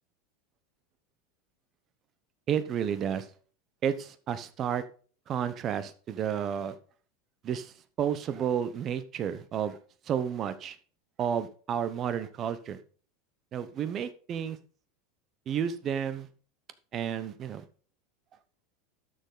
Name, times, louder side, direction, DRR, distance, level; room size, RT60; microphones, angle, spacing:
voice 1, 2.5-3.3 3.8-4.8 5.3-6.8 7.4-9.8 10.1-10.8 11.2-12.8 13.5-14.6 15.5-16.3 16.9-17.6, right 8 dB, 30° right, 13 dB, 1.0 m, -31 dB
12.5 x 6.9 x 4.0 m, 0.41 s
supercardioid pair, 150°, 0 cm